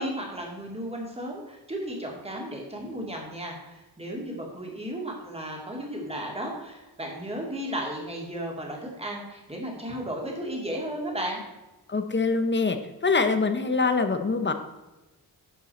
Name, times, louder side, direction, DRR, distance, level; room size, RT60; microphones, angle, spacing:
voice 1, 0.0-11.4, right 1 dB, 15° right, -1 dB, 2.3 m, -34 dB
voice 2, 11.9-12.8 13.0-14.5, left 4 dB, 30° left, 8 dB, 0.7 m, -24 dB
11.0 x 6.7 x 4.2 m, 1.1 s
wide cardioid pair, 150°, 40 cm